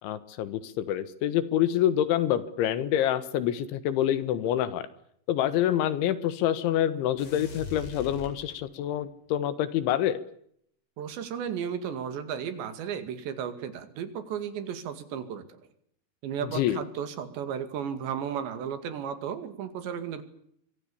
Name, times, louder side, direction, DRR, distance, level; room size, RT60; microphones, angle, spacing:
voice 1, 0.0-4.9 5.3-10.2 16.4-16.8, left 11 dB, 80° left, 14 dB, 3.9 m, -27 dB
sound 1, 7.2-9.0, left 2 dB, 60° left, 6.8 m, -41 dB
voice 2, 11.0-15.4 16.2-20.2, right 8 dB, 70° right, 10 dB, 4.4 m, -34 dB
26.5 x 24.5 x 7.1 m, 0.70 s
omnidirectional pair, 5.3 m